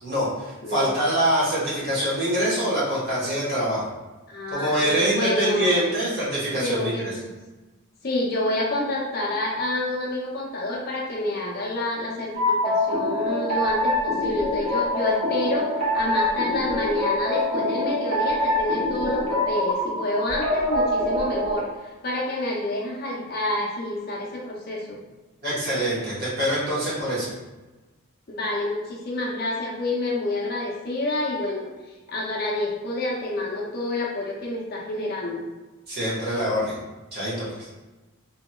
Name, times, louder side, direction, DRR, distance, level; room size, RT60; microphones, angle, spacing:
voice 1, 0.0-3.9 4.5-7.2 25.4-27.3 35.9-36.8 37.1-37.7, right 1 dB, 45° right, -9 dB, 1.2 m, -25 dB
voice 2, 0.6-1.1 4.3-5.9 6.6-7.3 8.0-21.7 22.0-25.0 28.3-31.7 32.1-35.4, left 1 dB, 45° left, -2 dB, 0.5 m, -28 dB
sound 1, 12.3-21.6, left 1 dB, 75° right, 1.2 m, -24 dB
2.8 x 2.7 x 2.2 m, 1.2 s
head